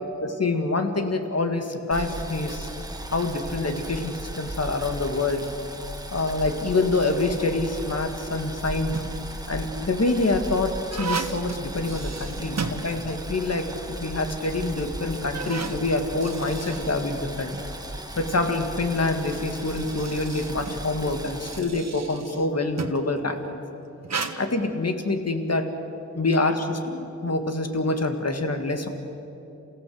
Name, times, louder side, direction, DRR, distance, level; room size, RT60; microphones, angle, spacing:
voice 1, 0.0-2.7 3.1-5.5 6.1-9.0 9.5-13.7 14.0-17.5 18.2-23.6 24.4-25.7 26.1-28.9, left 2 dB, 55° left, 6 dB, 2.1 m, -26 dB
Boiling, 1.9-21.6, right 1 dB, 15° right, 2.1 m, -37 dB
sound 1, 8.9-9.3 10.0-13.4 13.7-13.8 14.6-14.7 15.1-17.7 18.9-23.1 24.0-24.3, right 5 dB, 65° right, 1.4 m, -35 dB
28.0 x 15.5 x 7.9 m, 2.9 s
wide cardioid pair, 65°, 29 cm